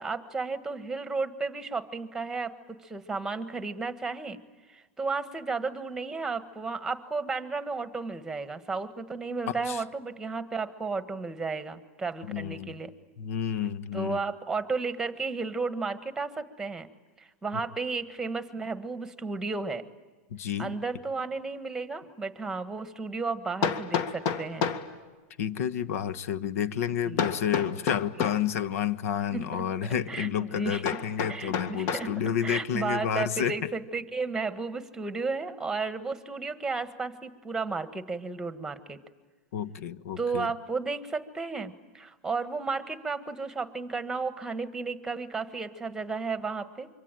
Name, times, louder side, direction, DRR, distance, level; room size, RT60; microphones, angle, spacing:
voice 1, 0.0-4.4 4.7-12.9 13.9-16.9 17.2-19.8 20.6-24.6 27.0-27.3 29.3-29.7 30.1-30.8 31.3-39.0 40.2-46.9, right 4 dB, 5° right, 11 dB, 1.5 m, -33 dB
voice 2, 12.3-12.8 13.2-14.2 20.3-20.8 25.4-33.5 39.5-40.5, left 9 dB, 80° left, 13 dB, 1.3 m, -30 dB
Hammer, 22.0-22.1 23.6-24.9 27.2-28.5 30.8-32.1, left 7 dB, 45° left, 2.0 m, -30 dB
25.5 x 24.5 x 9.2 m, 1.3 s
supercardioid pair, 140°, 8 cm